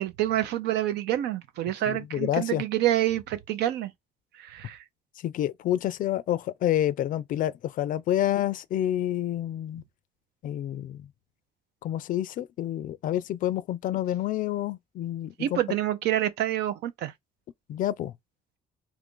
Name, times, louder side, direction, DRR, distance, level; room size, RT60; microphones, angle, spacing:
voice 1, 0.0-3.9 4.3-4.8 15.4-17.1, right 12 dB, 80° right, 0.6 m, -27 dB
voice 2, 1.9-2.6 5.2-9.8 10.4-11.1 11.8-15.6 17.7-18.1, left 12 dB, 55° left, 0.4 m, -28 dB
2.9 x 2.5 x 3.6 m
cardioid pair, 110°, 17 cm